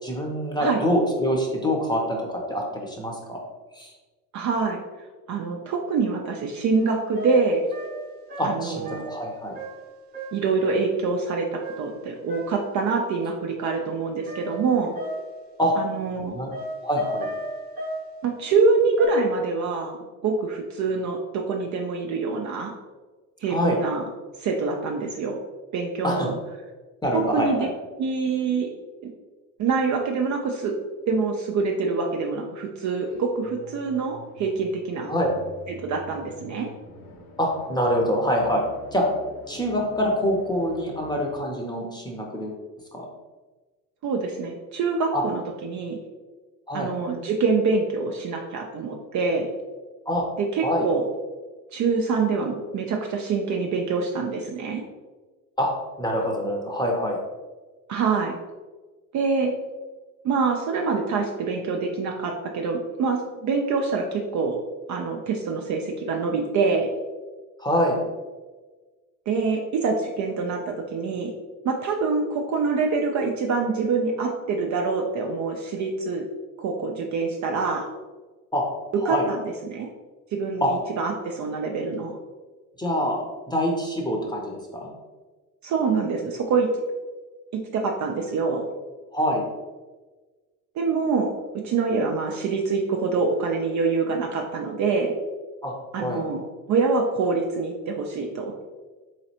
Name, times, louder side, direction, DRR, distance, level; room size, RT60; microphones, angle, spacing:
voice 1, 0.0-3.4 3.7-3.9 8.4-9.6 15.6-15.7 16.3-16.5 16.8-17.3 23.5-23.8 26.0-26.3 27.0-27.7 35.1-35.3 37.4-38.6 38.9-39.0 39.5-42.6 42.9-43.1 45.1-45.2 46.7-46.9 50.1-50.2 50.6-50.8 55.6-55.7 56.0-57.2 67.6-68.0 78.5-78.6 79.0-79.3 80.6-80.7 82.8-84.9 89.1-89.4 95.6-96.2, equal, 10° left, 0 dB, 0.8 m, -25 dB
voice 2, 4.3-4.8 5.3-7.7 8.4-9.0 10.3-14.9 15.8-16.4 18.2-22.7 23.4-24.1 24.4-25.4 25.7-26.3 27.3-27.7 28.0-28.7 29.6-30.7 31.1-35.1 35.8-36.7 44.0-46.0 46.7-49.5 50.4-51.0 51.7-54.8 57.9-58.3 59.1-59.5 60.2-64.6 64.9-66.9 69.3-71.3 71.6-76.2 76.6-77.9 79.1-79.9 80.3-82.2 85.6-86.7 87.7-88.7 90.8-91.3 91.6-95.1 95.9-96.4 96.7-98.6, right 4 dB, 40° right, 1 dB, 0.5 m, -25 dB
sound 1, 6.8-6.9 7.2-9.2 9.5-9.9 10.1-10.5 11.6-12.6 14.3-15.5 16.5-18.1 19.0-19.1, right 1 dB, 20° right, 0.9 m, -35 dB
sound 2, 33.0-41.4, left 1 dB, 70° left, 0.9 m, -46 dB
3.9 x 3.2 x 2.8 m, 1.3 s
hypercardioid pair, 70°, 48 cm